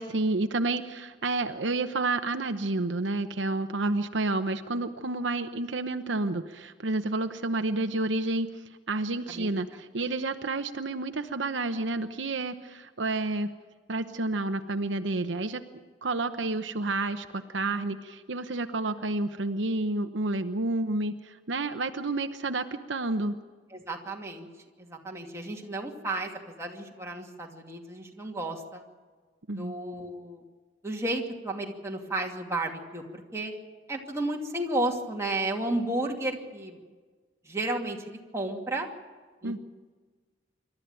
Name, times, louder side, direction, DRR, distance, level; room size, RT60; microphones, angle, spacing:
voice 1, 0.0-8.5 8.9-13.5 13.9-15.6 16.0-23.3 29.5-29.7 39.4-39.6, right 2 dB, 80° right, 8 dB, 1.0 m, -30 dB
voice 2, 23.7-24.5 24.8-28.8 29.5-30.4 30.8-33.5 33.9-36.8 37.4-38.9 39.4-39.6, right 2 dB, 15° right, 0 dB, 2.5 m, -33 dB
27.0 x 13.0 x 9.0 m, 1.4 s
head